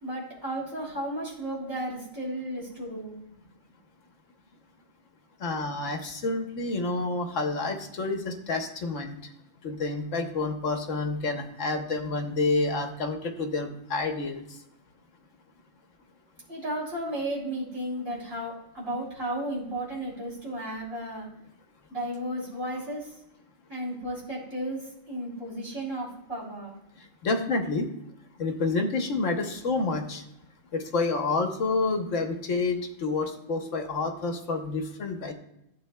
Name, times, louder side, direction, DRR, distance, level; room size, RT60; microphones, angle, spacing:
voice 1, 0.0-3.4 16.5-21.3 21.9-23.1 23.7-26.7, right 1 dB, 50° right, -5 dB, 3.8 m, -34 dB
voice 2, 5.4-9.1 9.6-14.4 27.2-27.9 28.4-30.2 30.7-35.3, left 3 dB, 70° left, 5 dB, 1.2 m, -29 dB
15.0 x 7.6 x 2.2 m, 0.82 s
omnidirectional pair, 1.4 m